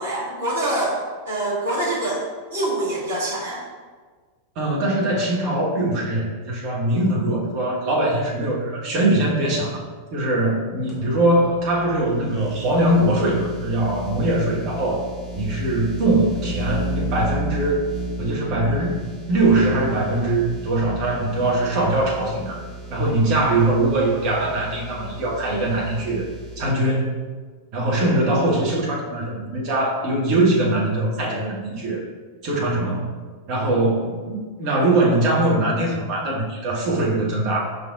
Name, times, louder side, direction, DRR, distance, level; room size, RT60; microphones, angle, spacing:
voice 1, 0.0-2.2 2.5-3.6, right 1 dB, 60° right, -6 dB, 1.3 m, -25 dB
voice 2, 4.5-9.8 10.1-15.0 15.4-17.8 18.2-22.6 22.9-26.3 26.6-27.2 27.7-32.0 32.4-33.1 33.5-37.6, right 1 dB, 40° right, -4 dB, 1.2 m, -21 dB
sound 1, 10.9-26.7, right 1 dB, 10° right, 1.4 m, -33 dB
5.3 x 3.8 x 2.4 m, 1.5 s
figure-of-eight pair, 90°, 0 cm